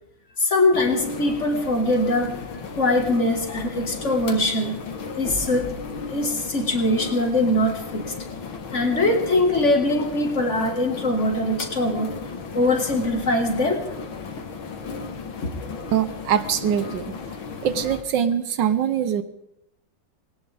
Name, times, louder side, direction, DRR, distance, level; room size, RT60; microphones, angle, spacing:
voice 1, 0.4-2.4 2.7-4.8 5.2-5.7 6.1-8.1 8.7-12.2 12.5-13.9 15.4-15.5, left 1 dB, 40° left, 4 dB, 1.8 m, -22 dB
sound 1, 0.7-18.0, left 4 dB, 85° left, 2.2 m, -35 dB
voice 2, 15.9-17.2 17.6-19.2, right 9 dB, 70° right, 11 dB, 1.4 m, -23 dB
19.5 x 18.0 x 3.4 m, 0.80 s
omnidirectional pair, 2.1 m